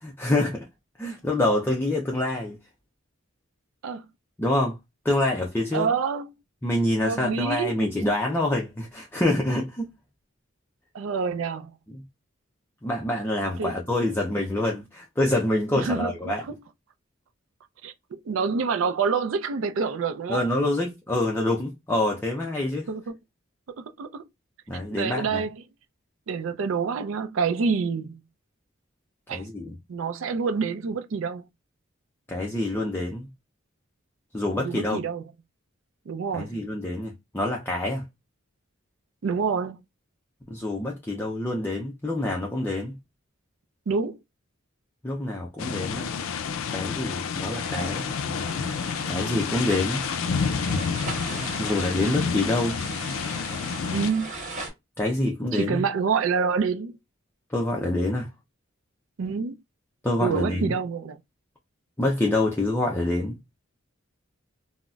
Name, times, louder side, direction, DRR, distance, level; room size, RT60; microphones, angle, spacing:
voice 1, 0.0-0.7 1.0-2.6 4.4-4.8 5.0-5.9 6.6-9.9 11.9-12.0 12.8-16.4 20.3-22.9 24.7-25.4 29.3-29.8 32.3-33.3 34.3-35.0 36.3-38.0 40.5-43.0 45.0-46.1 46.7-48.1 49.1-50.0 51.3-52.8 55.0-55.8 57.5-58.3 60.0-60.7 62.0-63.3, left 1 dB, 10° left, 0.4 m, -26 dB
voice 2, 5.7-6.3 7.0-7.7 10.9-11.7 13.6-13.7 15.7-16.5 17.8-20.4 22.9-23.2 23.8-24.3 25.0-25.6 26.3-28.2 29.3-29.4 29.9-31.4 34.6-35.2 36.1-36.6 39.2-39.8 43.9-44.2 53.9-54.3 55.5-57.0 59.2-59.6 60.2-61.2, right 5 dB, 75° right, 0.4 m, -27 dB
sound 1, 45.6-54.1, left 6 dB, 90° left, 0.4 m, -29 dB
sound 2, 47.3-54.7, right 2 dB, 40° right, 1.4 m, -39 dB
3.8 x 2.0 x 2.2 m
head